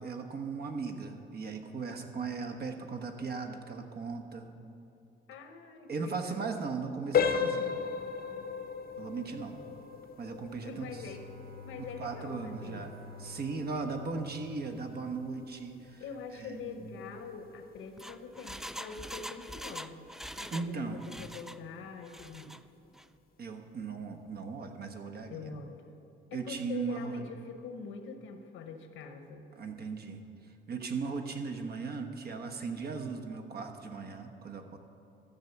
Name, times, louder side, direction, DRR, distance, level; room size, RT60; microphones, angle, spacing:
voice 1, 0.0-4.5 5.9-7.7 9.0-9.6 10.2-11.0 12.0-12.9 13.2-16.0 16.3-16.9 20.5-21.0 23.4-25.5 26.3-27.2 29.5-30.2 30.7-34.8, right 4 dB, 50° right, 5 dB, 1.3 m, -37 dB
voice 2, 5.3-6.5 10.7-11.2 11.6-12.9 16.0-20.1 20.4-22.6 25.3-26.0 26.3-29.5, left 5 dB, 85° left, 7 dB, 1.2 m, -44 dB
sound 1, 7.1-17.8 18.2-18.4 19.0-19.1 19.6-19.7, left 6 dB, 50° left, 0.8 m, -36 dB
Bowed string instrument, 10.7-15.9, left 2 dB, 85° right, 1.2 m, -49 dB
Engine, 17.8-20.7 21.0-21.6 22.0-22.6 23.0-23.1, equal, ahead, 0.3 m, -43 dB
13.0 x 7.3 x 6.9 m, 2.7 s
cardioid pair, 90°, 20 cm